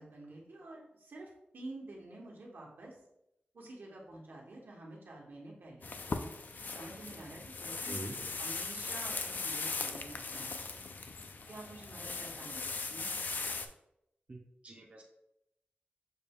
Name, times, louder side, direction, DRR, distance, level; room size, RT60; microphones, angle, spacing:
voice 1, 0.0-3.0 3.5-5.9 6.6-10.6 11.5-13.1, right 2 dB, 75° right, -2 dB, 1.1 m, -49 dB
sound 1, 5.8-13.7, left 4 dB, 55° left, 0.4 m, -39 dB
voice 2, 14.6-15.0, right 2 dB, 35° right, -1 dB, 0.6 m, -43 dB
6.5 x 2.3 x 3.5 m, 0.82 s
wide cardioid pair, 115°, 4 cm